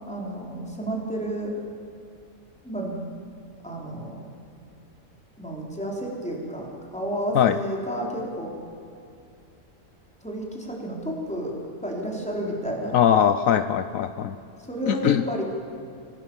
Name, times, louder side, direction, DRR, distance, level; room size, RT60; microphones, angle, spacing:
voice 1, 0.1-1.5 2.6-3.0 3.6-4.3 5.4-8.5 10.2-11.5 11.8-13.0 14.7-15.4, right 1 dB, 5° left, -2 dB, 4.1 m, -31 dB
voice 2, 12.9-14.4 14.9-15.2, left 9 dB, 75° left, 11 dB, 1.1 m, -21 dB
24.5 x 18.5 x 7.2 m, 2.5 s
omnidirectional pair, 1.5 m